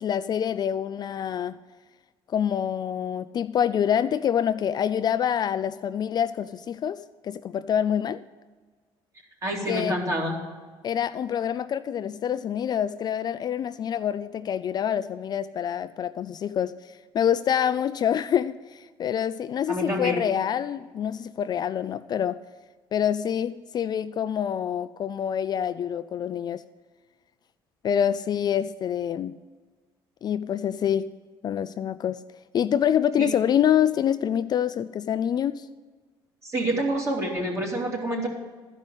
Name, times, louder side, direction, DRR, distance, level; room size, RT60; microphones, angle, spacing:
voice 1, 0.0-1.6 2.3-8.2 9.7-10.0 10.8-16.7 17.1-22.4 22.9-26.6 27.8-29.4 30.2-31.1 31.4-32.2 32.5-35.7, left 9 dB, 45° left, 12 dB, 0.3 m, -26 dB
voice 2, 9.4-10.4 19.7-20.2 33.2-33.3 36.4-38.3, right 1 dB, 30° right, -1 dB, 2.9 m, -27 dB
13.0 x 5.3 x 8.1 m, 1.4 s
cardioid pair, 110°, 10 cm